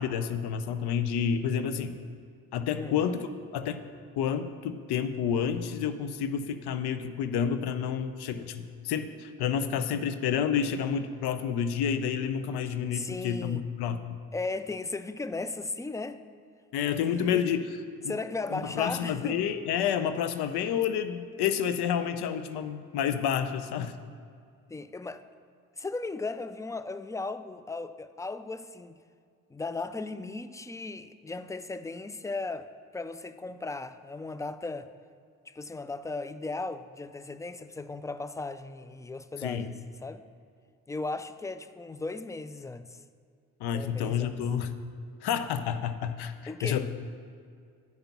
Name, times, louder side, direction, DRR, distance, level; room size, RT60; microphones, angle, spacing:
voice 1, 0.0-2.0 2.5-3.3 3.5-3.8 4.2-14.0 16.7-17.7 18.0-18.1 18.5-23.9 39.4-39.7 43.6-44.7 45.2-46.9, left 8 dB, 70° left, 10 dB, 0.7 m, -29 dB
voice 2, 12.9-13.7 14.3-16.2 17.1-17.4 18.1-19.4 24.7-25.2 25.8-29.0 29.5-32.7 32.9-34.9 35.5-40.2 40.9-43.0 43.7-44.4 46.5-46.8, left 3 dB, 10° left, 12 dB, 0.3 m, -36 dB
9.5 x 5.2 x 5.8 m, 2.2 s
hypercardioid pair, 50°, 41 cm